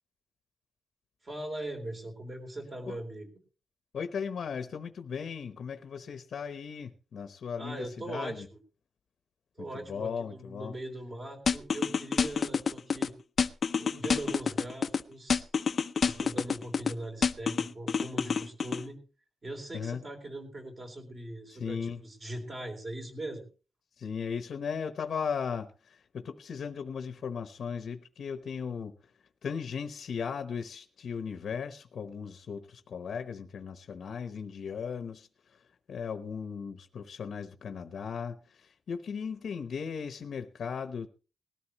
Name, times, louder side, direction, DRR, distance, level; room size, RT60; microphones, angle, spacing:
voice 1, 1.2-3.3 7.6-8.6 9.6-13.1 13.8-15.5 16.0-19.0 19.4-23.5, right 1 dB, 30° right, 3.7 m, -40 dB
voice 2, 3.9-8.5 9.6-10.7 19.7-20.0 21.5-22.0 24.0-28.9 29.4-35.3 35.9-41.1, left 6 dB, 65° left, 1.0 m, -37 dB
sound 1, 11.5-13.1 13.4-15.0 15.3-16.9 17.2-18.8, left 6 dB, 45° left, 0.6 m, -28 dB
19.5 x 13.5 x 3.0 m
wide cardioid pair, 165°, 0 cm